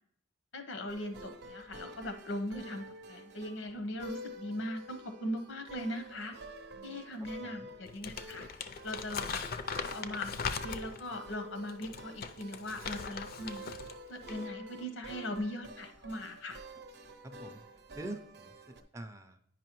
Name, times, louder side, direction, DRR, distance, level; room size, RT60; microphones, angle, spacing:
voice 1, 0.5-6.3 6.8-8.4 8.8-9.4 9.9-13.7 14.1-16.6, left 1 dB, 80° left, 8 dB, 0.8 m, -40 dB
sound 1, 0.9-18.8, equal, 60° right, 0.7 m, -49 dB
voice 2, 7.4-7.7 17.2-17.6 17.9-19.4, right 1 dB, 15° right, 8 dB, 0.4 m, -45 dB
Crumpling crinkling, 7.9-11.1 11.7-14.0 14.2-14.5, left 5 dB, 50° left, 0.4 m, -39 dB
9.2 x 5.3 x 3.0 m, 0.71 s
head